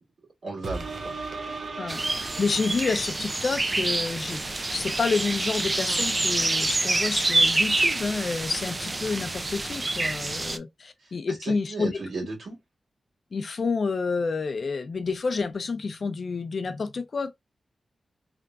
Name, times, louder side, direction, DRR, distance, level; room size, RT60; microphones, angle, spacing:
voice 1, 0.4-1.2 11.0-12.6, right 3 dB, 85° right, 2.0 m, -35 dB
sound 1, 0.6-3.6 4.1-4.2, right 3 dB, 60° right, 0.6 m, -37 dB
voice 2, 1.8-11.9 13.3-17.4, left 4 dB, 55° left, 0.5 m, -29 dB
sound 2, 1.9-10.6, right 2 dB, 25° right, 0.3 m, -27 dB
3.4 x 2.9 x 2.3 m
wide cardioid pair, 150°, 0 cm